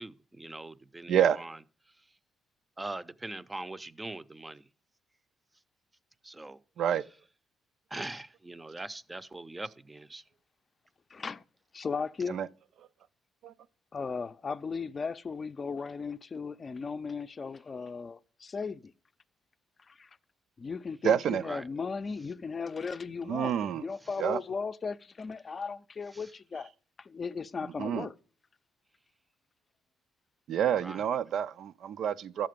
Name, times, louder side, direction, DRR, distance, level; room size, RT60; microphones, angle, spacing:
voice 1, 0.0-1.5 2.8-4.6 6.2-6.6 7.9-10.2 21.4-21.6 30.8-31.0, right 2 dB, 15° right, 0.6 m, -41 dB
voice 2, 1.1-1.5 6.8-7.1 12.3-12.5 13.4-13.5 21.0-21.5 23.3-23.9 24.2-24.4 27.8-28.1 30.5-32.5, right 9 dB, 70° right, 0.4 m, -28 dB
voice 3, 11.1-11.4 11.7-12.4 13.9-18.8 19.9-20.1 20.6-26.7 27.0-28.1, left 5 dB, 35° left, 0.5 m, -36 dB
11.5 x 7.6 x 5.1 m
cardioid pair, 90°, 0 cm